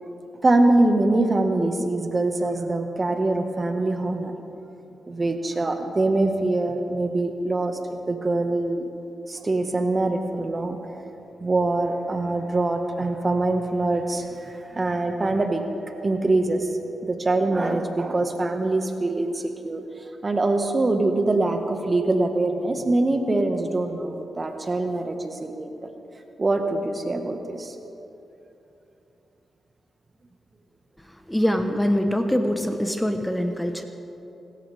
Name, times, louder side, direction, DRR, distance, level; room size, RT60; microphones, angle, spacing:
voice 1, 0.4-4.3 5.1-7.8 8.1-8.9 9.3-10.8 11.4-16.7 17.0-19.8 20.2-25.7 26.4-27.7, right 2 dB, 35° right, 5 dB, 1.8 m, -24 dB
voice 2, 31.3-33.8, equal, 5° left, 6 dB, 1.3 m, -23 dB
26.0 x 13.5 x 3.7 m, 3.0 s
hypercardioid pair, 40°, 0 cm